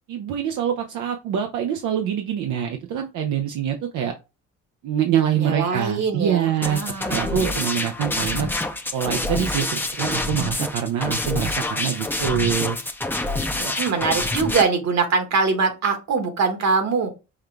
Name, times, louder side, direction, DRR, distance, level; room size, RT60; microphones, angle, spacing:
voice 1, 0.1-4.1 4.8-6.8 7.1-8.5 8.9-12.8 13.6-13.8, right 9 dB, 80° right, 3 dB, 0.6 m, -25 dB
voice 2, 5.3-7.5 13.8-17.1, right 4 dB, 65° right, 6 dB, 1.4 m, -23 dB
sound 1, 6.6-14.6, left 2 dB, 5° left, 0.5 m, -26 dB
5.7 x 2.3 x 3.3 m, 0.27 s
cardioid pair, 90°, 30 cm